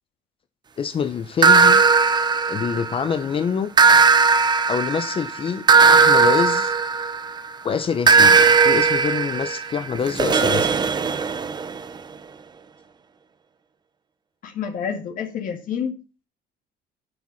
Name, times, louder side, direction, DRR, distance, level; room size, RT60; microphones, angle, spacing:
voice 1, 0.8-1.8 2.5-3.7 4.7-6.7 7.6-8.4 8.6-10.8, left 6 dB, 30° left, 0.8 m, -25 dB
sound 1, 1.4-3.1 3.8-7.5 8.1-11.8, right 5 dB, 25° right, 0.8 m, -17 dB
voice 2, 14.4-15.9, left 7 dB, 55° left, 2.2 m, -28 dB
10.0 x 7.5 x 5.7 m
cardioid pair, 155°, 17 cm